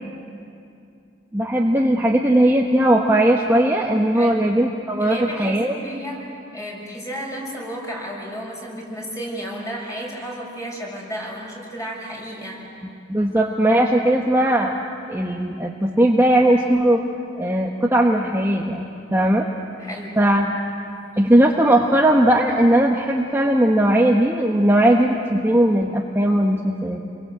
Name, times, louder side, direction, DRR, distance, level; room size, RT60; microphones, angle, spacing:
voice 1, 1.3-5.8 13.1-14.7 15.1-17.0 17.4-19.5 20.2-20.6 21.2-27.0, right 1 dB, 15° right, -1 dB, 1.2 m, -18 dB
voice 2, 4.1-4.5 5.0-6.2 6.5-12.6 19.8-20.1, equal, 20° left, -2 dB, 6.6 m, -32 dB
29.0 x 23.0 x 7.9 m, 2.5 s
head